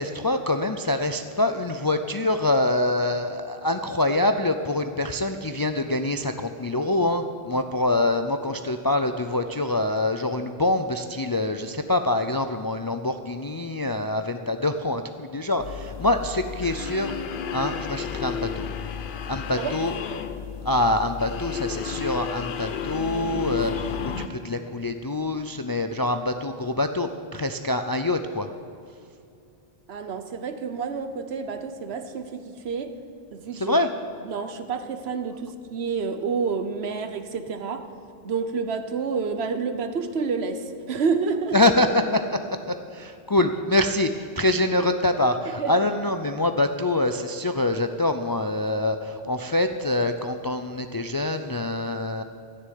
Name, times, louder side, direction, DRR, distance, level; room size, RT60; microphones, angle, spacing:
voice 1, 0.0-17.2 17.5-18.6 19.3-19.9 20.6-28.5 33.5-33.9 41.5-42.4 42.7-52.2, left 2 dB, 40° left, 7 dB, 0.3 m, -25 dB
sound 1, 15.6-24.3, left 7 dB, 60° left, 0.8 m, -32 dB
voice 2, 29.9-33.0 33.3-33.8 34.2-37.9 38.2-41.6 45.6-45.9, right 5 dB, 75° right, 9 dB, 1.1 m, -29 dB
14.0 x 6.7 x 9.3 m, 2.5 s
omnidirectional pair, 1.1 m